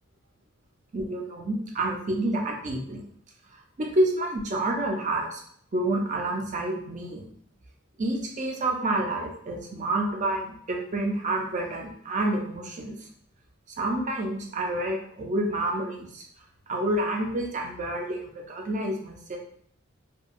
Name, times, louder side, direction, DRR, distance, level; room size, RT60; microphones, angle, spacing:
voice 1, 0.9-3.0 3.5-5.4 5.7-7.3 8.0-13.0 13.8-16.2 16.7-19.4, right 1 dB, 35° right, 0 dB, 0.5 m, -28 dB
2.7 x 2.2 x 2.4 m, 0.64 s
head